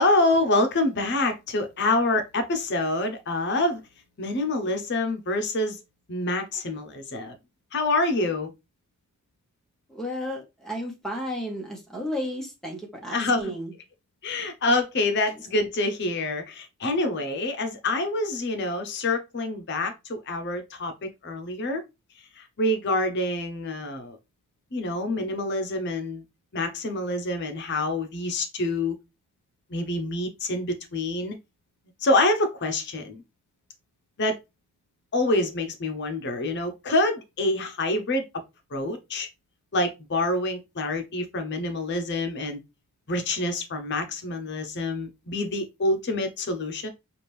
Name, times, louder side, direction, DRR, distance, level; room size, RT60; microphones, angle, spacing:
voice 1, 0.0-3.8 4.2-5.8 6.1-7.3 7.7-8.5 13.1-13.5 14.2-21.8 22.4-24.2 24.7-26.2 26.5-29.0 29.7-31.4 32.0-33.2 34.2-34.4 35.1-38.2 38.7-39.3 39.7-42.6 43.1-46.9, left 2 dB, 55° left, 0.8 m, -26 dB
voice 2, 9.9-13.7, equal, ahead, 1.2 m, -33 dB
4.9 x 2.5 x 3.2 m
head